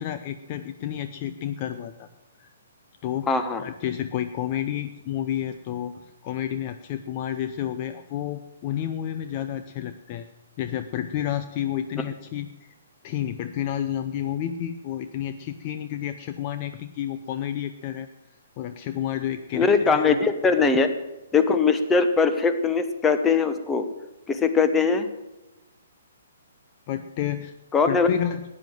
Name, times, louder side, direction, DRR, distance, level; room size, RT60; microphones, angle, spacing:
voice 1, 0.0-2.1 2.4-2.5 3.0-10.3 10.6-12.7 13.0-18.1 18.6-20.2 26.9-27.5 27.9-28.4, left 11 dB, 35° left, 9 dB, 0.7 m, -30 dB
voice 2, 3.3-3.6 19.5-20.9 21.3-23.9 24.3-25.1 27.7-28.1, left 5 dB, 10° left, 9 dB, 1.2 m, -21 dB
15.0 x 9.9 x 7.7 m, 1.0 s
figure-of-eight pair, 125°, 0 cm